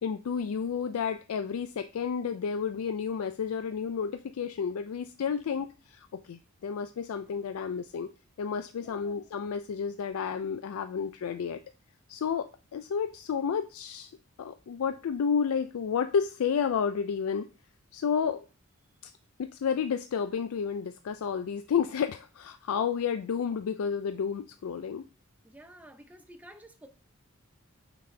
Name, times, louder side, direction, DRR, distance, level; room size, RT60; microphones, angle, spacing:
voice 1, 0.0-8.1 8.4-11.6 12.1-14.1 14.4-17.5 17.9-18.4 19.0-19.1 19.4-25.0, left 6 dB, 80° left, 0.4 m, -31 dB
voice 2, 8.8-9.2 19.0-19.2 25.4-26.9, right 1 dB, 5° right, 0.7 m, -52 dB
9.0 x 4.1 x 3.3 m
head